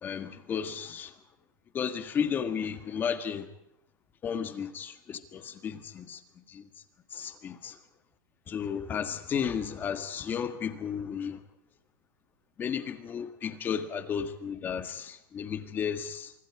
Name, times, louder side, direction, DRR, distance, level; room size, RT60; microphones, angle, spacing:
voice 1, 0.0-1.1 1.7-3.5 4.2-6.2 6.5-6.7 7.1-7.7 8.5-11.4 12.6-16.3, left 7 dB, 20° left, 1.7 m, -33 dB
25.0 x 25.0 x 4.8 m
supercardioid pair, 165°, 11 cm